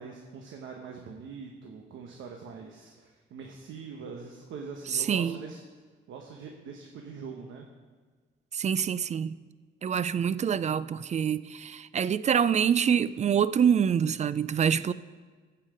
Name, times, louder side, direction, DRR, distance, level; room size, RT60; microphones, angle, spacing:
voice 1, 0.0-5.6 6.1-7.7, right 5 dB, 75° right, 1.1 m, -43 dB
voice 2, 4.9-5.4 8.5-9.4 9.8-14.9, right 8 dB, 35° right, 0.4 m, -26 dB
15.0 x 5.7 x 5.0 m
cardioid pair, 90°, 20 cm